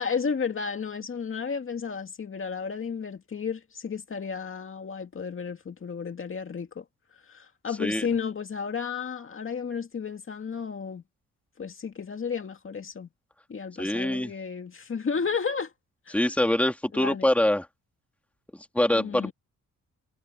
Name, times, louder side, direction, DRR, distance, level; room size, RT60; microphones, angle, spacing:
voice 1, 0.0-6.8 7.3-11.0 11.6-13.1 13.5-15.7 16.1-16.3 16.9-17.3 19.0-19.3, left 6 dB, 40° left, 2.2 m, -33 dB
voice 2, 13.8-14.3 16.1-17.7 18.7-19.3, left 1 dB, 5° left, 2.6 m, -24 dB
cardioid pair, 110°, 31 cm